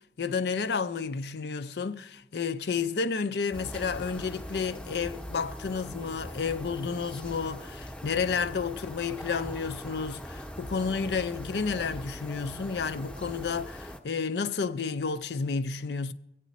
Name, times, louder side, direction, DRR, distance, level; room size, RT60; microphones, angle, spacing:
voice 1, 0.2-16.1, left 5 dB, 70° left, 0.5 m, -31 dB
sound 1, 3.5-14.0, equal, 10° left, 0.7 m, -41 dB
24.0 x 8.3 x 4.1 m
head